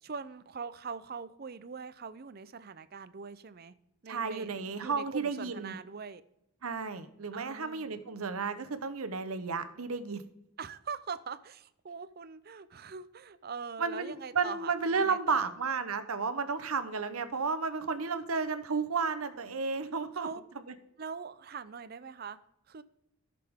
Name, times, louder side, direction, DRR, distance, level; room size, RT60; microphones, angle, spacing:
voice 1, 0.0-3.7 4.0-6.2 7.3-7.9 10.6-15.5 20.1-20.4 21.0-22.4 22.7-22.8, right 5 dB, 45° right, 15 dB, 0.5 m, -42 dB
voice 2, 4.1-5.7 6.6-10.2 13.8-20.3, right 5 dB, 90° right, 10 dB, 1.0 m, -32 dB
14.0 x 6.7 x 3.6 m, 0.83 s
head